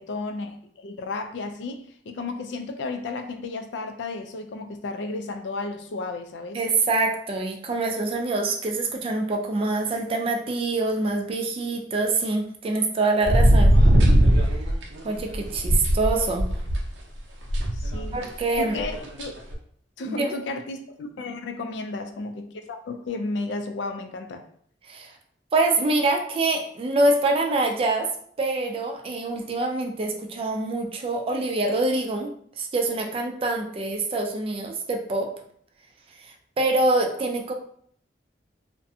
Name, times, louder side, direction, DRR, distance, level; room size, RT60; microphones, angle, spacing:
voice 1, 0.0-6.6 17.7-18.2 18.6-19.4 20.0-24.4, left 3 dB, 70° left, 6 dB, 0.3 m, -33 dB
voice 2, 6.5-13.7 14.4-14.6 15.0-16.5 18.1-18.8 20.0-20.4 24.9-25.2 25.5-28.1 28.4-35.3 36.2-37.5, right 2 dB, 30° right, 3 dB, 0.3 m, -25 dB
sound 1, 13.2-16.8 17.5-18.3 18.6-19.5, equal, 80° right, 0.6 m, -20 dB
2.5 x 2.1 x 2.6 m, 0.62 s
head